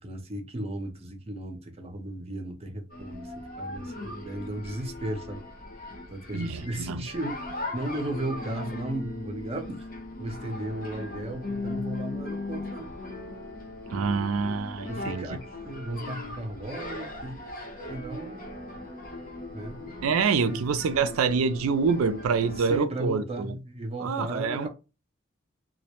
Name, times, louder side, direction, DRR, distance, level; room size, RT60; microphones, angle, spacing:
voice 1, 0.0-5.4 6.1-9.8 10.2-12.9 14.9-17.4 17.9-18.4 19.5-20.7 22.6-24.7, right 1 dB, 30° right, 0.5 m, -35 dB
sound 1, 2.9-22.8, left 2 dB, 45° left, 0.7 m, -39 dB
voice 2, 6.3-7.0 13.9-15.3 20.0-23.6 24.0-24.7, right 5 dB, 85° right, 0.4 m, -26 dB
2.2 x 2.0 x 2.9 m
head